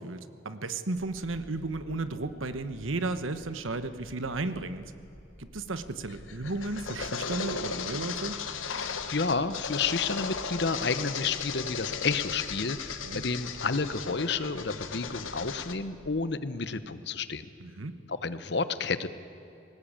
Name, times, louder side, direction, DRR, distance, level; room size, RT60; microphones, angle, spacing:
voice 1, 0.0-4.9 5.4-8.4 13.0-13.2 17.6-18.0, right 2 dB, 85° right, 11 dB, 1.2 m, -34 dB
sound 1, 0.9-16.2, equal, 30° left, 1.5 m, -52 dB
sound 2, 6.1-15.7, left 6 dB, 85° left, 1.3 m, -36 dB
voice 2, 8.7-17.5 18.1-19.1, left 4 dB, 55° left, 13 dB, 0.9 m, -31 dB
20.0 x 18.5 x 8.8 m, 2.8 s
head